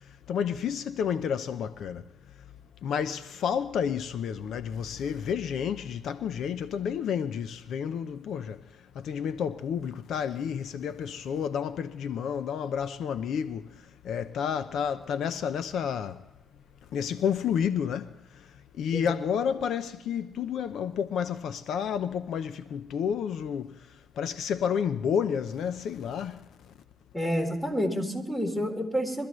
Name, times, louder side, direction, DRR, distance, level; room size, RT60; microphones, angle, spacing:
voice 1, 0.0-2.0 2.8-8.6 8.9-13.7 14.0-16.2 16.9-18.5 18.8-23.8 24.2-26.5, left 7 dB, 75° left, 0.7 m, -30 dB
voice 2, 27.1-29.3, equal, 10° left, 3.7 m, -29 dB
24.0 x 14.0 x 3.1 m
cardioid pair, 80°, 0 cm